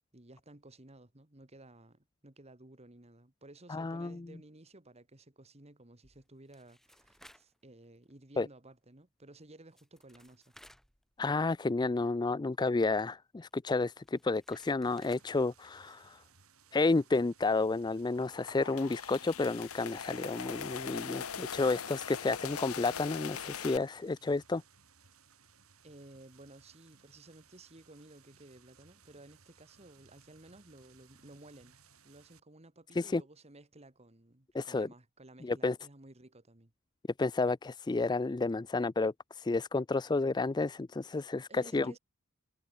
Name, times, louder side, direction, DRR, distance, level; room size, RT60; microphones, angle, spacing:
voice 1, 0.1-10.4 25.8-31.8 32.0-36.7 41.5-42.0, right 2 dB, 30° right, 2.0 m, -55 dB
voice 2, 3.7-4.2 8.4-8.5 11.2-16.2 16.7-24.6 33.0-33.2 34.5-34.9 35.4-35.8 37.2-41.9, left 3 dB, 20° left, 0.4 m, -31 dB
sound 1, 6.0-7.6 8.0-8.1 9.4-9.5 9.7-11.6 11.8-11.9 13.5-15.3, equal, ahead, 5.6 m, -60 dB
sound 2, 14.8-32.4, right 6 dB, 85° right, 6.6 m, -63 dB
sound 3, 18.2-23.8, left 7 dB, 85° left, 1.1 m, -41 dB
head